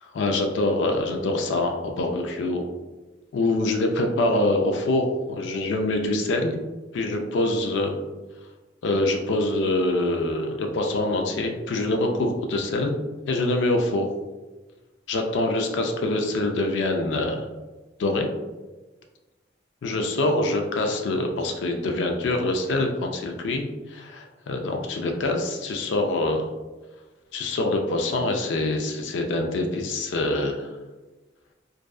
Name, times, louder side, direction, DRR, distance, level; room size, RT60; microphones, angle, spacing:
voice 1, 0.1-2.6 3.3-6.5 6.9-8.0 8.8-12.9 13.3-14.1 15.1-17.4 18.0-18.3 19.8-26.5 27.3-30.7, left 2 dB, 85° left, 3 dB, 0.4 m, -25 dB
2.6 x 2.3 x 2.2 m, 1.2 s
head